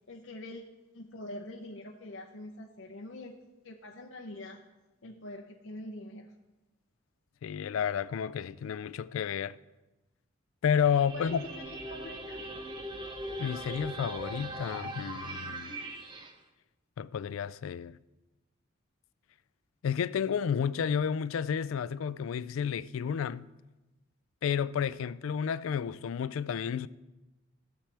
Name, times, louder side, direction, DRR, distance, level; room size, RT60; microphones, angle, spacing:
voice 1, 0.1-0.6 0.9-3.4 3.6-4.6 5.0-6.3 10.9-12.6, left 1 dB, 70° left, 0.8 m, -44 dB
voice 2, 7.4-9.6 10.6-11.4 13.4-15.8 17.0-18.0 19.8-23.5 24.4-26.9, left 7 dB, 90° left, 0.3 m, -31 dB
Take Off, 10.8-16.3, right 1 dB, 25° right, 0.8 m, -40 dB
15.5 x 7.2 x 3.4 m
head